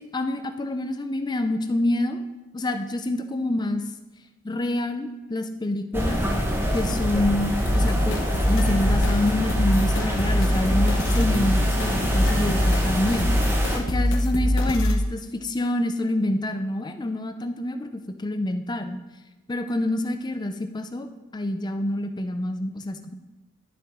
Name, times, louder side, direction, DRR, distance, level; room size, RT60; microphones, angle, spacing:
voice 1, 0.0-2.2 2.5-3.8 4.4-6.2 6.7-13.3 13.7-19.0 19.5-21.1 21.3-23.1, left 1 dB, 20° left, 8 dB, 0.4 m, -27 dB
sound 1, 5.9-13.8, equal, 10° right, 0.9 m, -27 dB
sound 2, 7.6-15.0, left 1 dB, 60° left, 1.1 m, -23 dB
11.5 x 7.1 x 3.6 m, 1.1 s
head